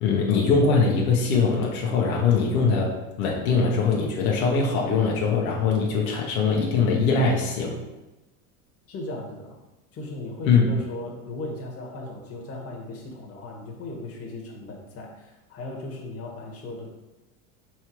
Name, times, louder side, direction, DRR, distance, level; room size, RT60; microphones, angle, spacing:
voice 1, 0.0-7.8 10.5-10.6, left 5 dB, 80° left, -1 dB, 1.3 m, -22 dB
voice 2, 8.9-9.6 9.9-16.9, left 2 dB, 35° left, -1 dB, 1.6 m, -37 dB
4.7 x 4.5 x 4.6 m, 1.0 s
supercardioid pair, 105°, 42 cm